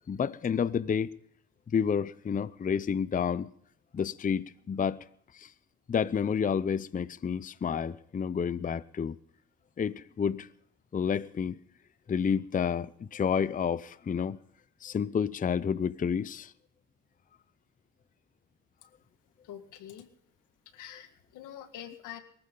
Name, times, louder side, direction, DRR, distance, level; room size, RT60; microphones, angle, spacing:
voice 1, 0.1-1.2 1.7-3.5 3.9-5.0 5.3-5.5 5.9-9.2 9.8-10.5 10.9-11.6 12.1-14.4 14.8-16.5, left 7 dB, 25° left, 0.6 m, -30 dB
voice 2, 19.4-20.1 20.7-22.2, left 10 dB, 90° left, 1.8 m, -45 dB
22.5 x 14.5 x 3.9 m
cardioid pair, 90°, 30 cm